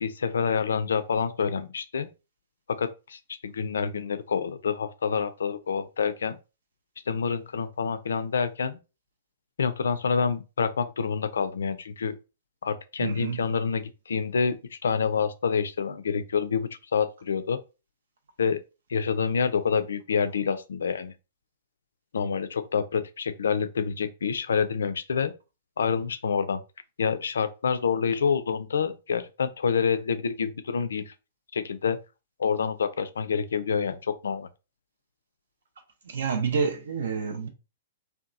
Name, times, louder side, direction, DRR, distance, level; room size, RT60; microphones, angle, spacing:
voice 1, 0.0-2.1 2.7-6.4 7.1-8.8 9.6-12.2 12.6-17.6 18.4-18.6 18.9-21.1 22.1-25.3 25.8-26.6 27.0-31.1 31.5-32.0 32.4-34.5, left 6 dB, 65° left, 0.3 m, -27 dB
voice 2, 13.0-13.4 36.1-37.5, right 5 dB, 60° right, 0.4 m, -28 dB
2.8 x 2.2 x 2.4 m
figure-of-eight pair, 110°, 0 cm